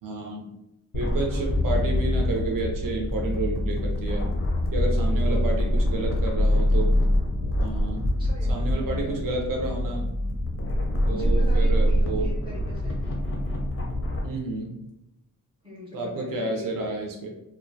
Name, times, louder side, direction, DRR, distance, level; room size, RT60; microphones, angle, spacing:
voice 1, 0.0-0.5 0.9-4.3 4.7-6.9 7.6-8.1 8.5-10.1 11.0-12.3 14.2-14.8 15.9-17.3, right 2 dB, 70° right, 0 dB, 0.6 m, -30 dB
sound 1, 0.9-14.2, equal, 40° left, 0.4 m, -24 dB
voice 2, 5.1-6.1 8.2-9.1 11.0-13.0 15.6-16.7, left 1 dB, 15° right, -5 dB, 0.6 m, -42 dB
2.5 x 2.1 x 2.6 m, 0.83 s
wide cardioid pair, 180°, 35 cm